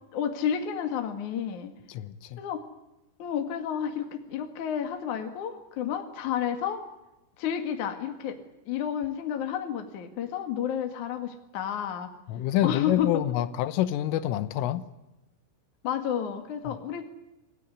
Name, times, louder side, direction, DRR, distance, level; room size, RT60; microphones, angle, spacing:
voice 1, 0.1-1.7 2.4-2.6 3.2-6.8 7.4-8.4 8.7-12.1 12.6-13.1 15.8-17.0, left 9 dB, 50° left, 2.5 m, -31 dB
voice 2, 1.9-2.4 12.3-14.8 16.7-16.8, left 13 dB, 80° left, 3.5 m, -27 dB
27.0 x 17.0 x 9.8 m
omnidirectional pair, 5.9 m